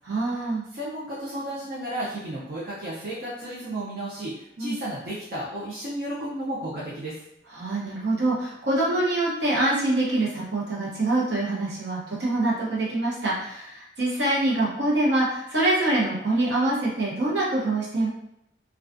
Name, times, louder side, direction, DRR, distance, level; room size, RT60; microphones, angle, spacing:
voice 1, 0.0-0.6 4.6-4.8 7.5-18.1, right 2 dB, 80° right, -5 dB, 0.9 m, -25 dB
voice 2, 0.7-7.2, right 1 dB, 55° right, -8 dB, 0.5 m, -33 dB
2.3 x 2.3 x 2.5 m, 0.79 s
head